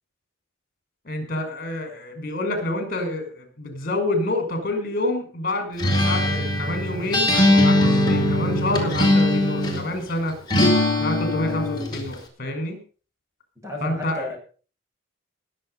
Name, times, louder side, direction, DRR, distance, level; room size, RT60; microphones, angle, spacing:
voice 1, 1.0-10.4 11.0-12.8 13.8-14.4, left 1 dB, 45° left, 6 dB, 5.7 m, -28 dB
Acoustic guitar, 5.8-9.9 10.5-12.1, left 1 dB, 20° left, 4.0 m, -20 dB
voice 2, 13.6-14.4, left 2 dB, 15° right, 0 dB, 6.7 m, -32 dB
20.5 x 7.8 x 5.6 m, 0.38 s
head